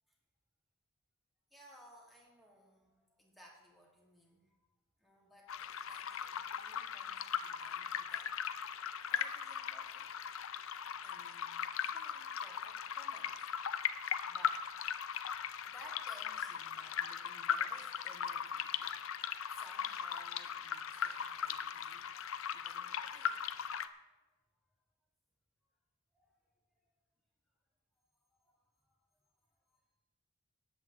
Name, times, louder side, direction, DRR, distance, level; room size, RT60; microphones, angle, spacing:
voice 1, 1.5-4.6 5.0-8.5 9.1-10.1 11.0-13.5 14.2-14.7 15.0-19.0 19.5-22.1 22.5-24.2 26.1-26.6 28.4-29.0 29.7-29.8, equal, ahead, -2 dB, 2.2 m, -61 dB
sound 1, 5.5-23.9, left 8 dB, 70° left, 0.5 m, -39 dB
18.0 x 7.9 x 3.6 m, 1.0 s
head